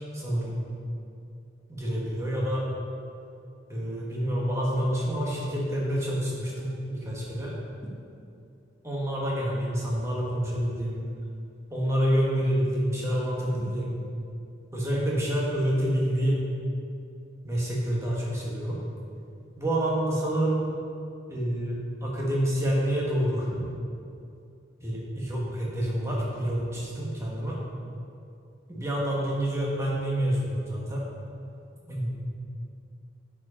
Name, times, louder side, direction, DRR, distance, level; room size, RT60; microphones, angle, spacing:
voice 1, 0.1-0.5 1.7-2.7 3.7-7.5 8.8-11.0 11.7-13.9 14.7-16.5 17.4-18.8 19.6-20.6 21.3-23.6 24.8-27.6 28.7-31.0 31.9-32.1, equal, 15° right, -5 dB, 1.5 m, -28 dB
9.2 x 5.0 x 5.1 m, 2.6 s
head